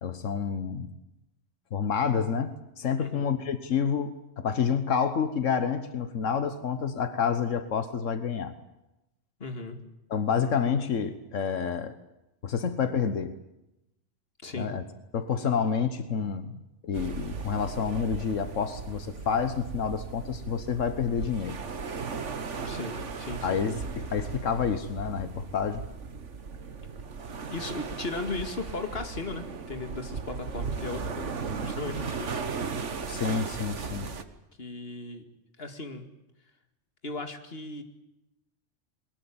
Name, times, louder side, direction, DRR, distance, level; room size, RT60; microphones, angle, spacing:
voice 1, 0.0-0.9 1.7-8.5 10.1-11.9 12.4-13.3 14.6-14.8 15.1-21.6 23.4-25.8 33.1-34.1, left 6 dB, 90° left, 11 dB, 1.6 m, -29 dB
voice 2, 9.4-9.8 14.4-14.7 22.6-23.6 27.5-32.3 34.6-35.2 35.6-36.1 37.0-37.8, left 3 dB, 50° left, 7 dB, 2.5 m, -37 dB
sound 1, 16.9-34.2, right 5 dB, 70° right, 1.8 m, -37 dB
22.0 x 20.0 x 8.8 m, 0.90 s
omnidirectional pair, 1.3 m